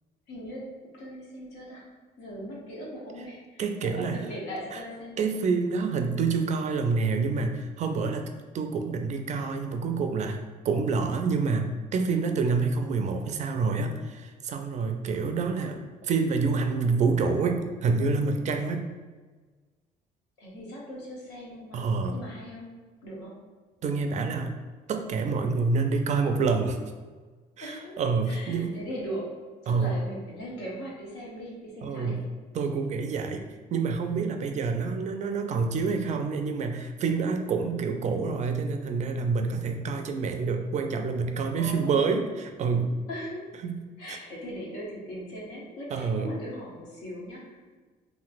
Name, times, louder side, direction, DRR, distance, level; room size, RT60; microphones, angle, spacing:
voice 1, 0.3-1.9 2.2-5.2 20.4-22.7 23.0-23.3 27.6-28.0 28.3-29.2 29.6-32.2 33.4-33.5 41.5-42.3 43.1-43.5 44.0-47.8, equal, 85° left, -4 dB, 1.0 m, -39 dB
voice 2, 3.6-4.2 4.7-4.8 5.2-8.3 8.5-10.4 10.6-18.9 21.7-22.2 23.8-24.6 24.9-26.8 27.6-28.8 29.7-30.0 31.8-32.2 32.5-43.0 43.6-43.8 44.1-44.2 45.9-46.3, right 4 dB, 45° right, 5 dB, 0.4 m, -27 dB
2.9 x 2.9 x 2.5 m, 1.4 s
cardioid pair, 110°, 17 cm